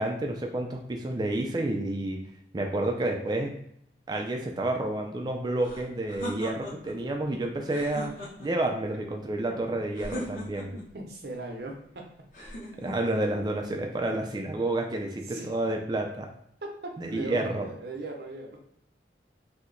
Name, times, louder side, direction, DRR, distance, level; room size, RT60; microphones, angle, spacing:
voice 1, 0.0-2.3 2.5-3.5 4.1-8.1 8.4-10.7 12.8-16.3 17.0-17.7, right 2 dB, 25° right, 2 dB, 0.3 m, -30 dB
sound 1, 5.6-7.0 7.6-8.7 9.9-10.9 12.3-13.2, left 1 dB, 45° left, 0.8 m, -39 dB
voice 2, 10.9-12.1 15.3-15.5 16.6-18.6, right 2 dB, 65° right, 1 dB, 0.6 m, -39 dB
2.8 x 2.1 x 3.7 m, 0.71 s
head